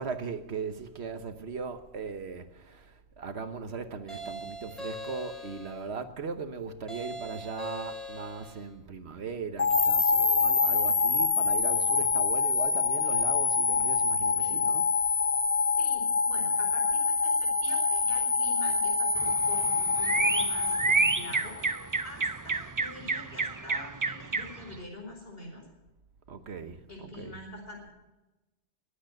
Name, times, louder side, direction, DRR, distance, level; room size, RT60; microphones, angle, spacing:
voice 1, 0.0-15.0 26.3-27.4, right 5 dB, 65° right, 1.3 m, -38 dB
sound 1, 4.1-5.8 6.9-8.7, equal, ahead, 4.5 m, -41 dB
sound 2, 9.6-21.8, left 5 dB, 40° left, 0.9 m, -26 dB
voice 2, 15.8-25.6 26.9-27.9, left 2 dB, 55° left, 4.9 m, -46 dB
sound 3, 19.2-24.8, right 4 dB, 30° right, 0.3 m, -30 dB
21.0 x 8.5 x 7.7 m
omnidirectional pair, 1.2 m